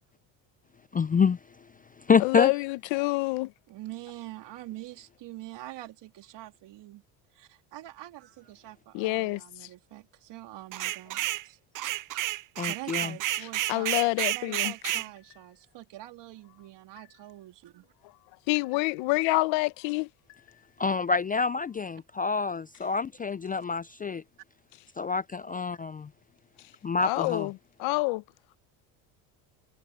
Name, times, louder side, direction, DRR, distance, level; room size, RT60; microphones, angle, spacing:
voice 1, 0.9-1.4 2.1-2.5 12.6-13.1 20.8-24.2 25.0-26.1 26.8-27.5, left 5 dB, 20° left, 0.5 m, -27 dB
voice 2, 2.2-3.5 8.9-9.7 13.4-14.7 18.5-20.1 27.0-28.2, left 23 dB, 70° left, 1.1 m, -27 dB
voice 3, 3.7-7.0 7.3-11.6 12.7-13.9 14.3-17.9, right 15 dB, 60° right, 3.4 m, -45 dB
sound 1, 10.7-11.4 11.8-15.1, right 16 dB, 45° right, 0.6 m, -30 dB
sound 2, 15.2-15.7 16.2-17.5 17.8-19.2 19.6-20.9 21.3-21.8, left 23 dB, 90° left, 7.9 m, -62 dB
supercardioid pair, 85°, 47 cm